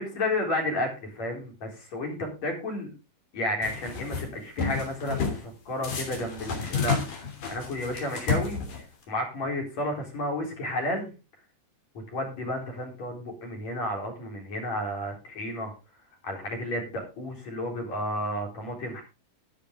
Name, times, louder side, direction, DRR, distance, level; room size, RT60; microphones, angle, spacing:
voice 1, 0.0-2.9 3.3-7.0 7.5-11.1 11.9-15.7 16.2-19.0, left 1 dB, 55° left, 1 dB, 5.2 m, -32 dB
sound 1, 3.6-4.2 4.6-5.4 5.8-9.0, left 5 dB, 70° left, 4.6 m, -31 dB
11.5 x 11.5 x 3.7 m, 0.30 s
omnidirectional pair, 3.7 m